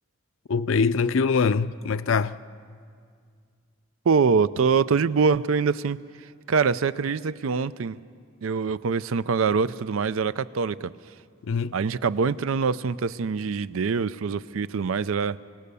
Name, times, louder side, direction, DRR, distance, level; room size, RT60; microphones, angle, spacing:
voice 1, 0.5-2.4 11.4-11.7, left 5 dB, 75° left, 0.5 m, -23 dB
voice 2, 4.1-6.0 6.5-8.0 8.4-10.9 11.7-15.4, right 5 dB, 90° right, 0.5 m, -24 dB
25.5 x 17.0 x 6.9 m
head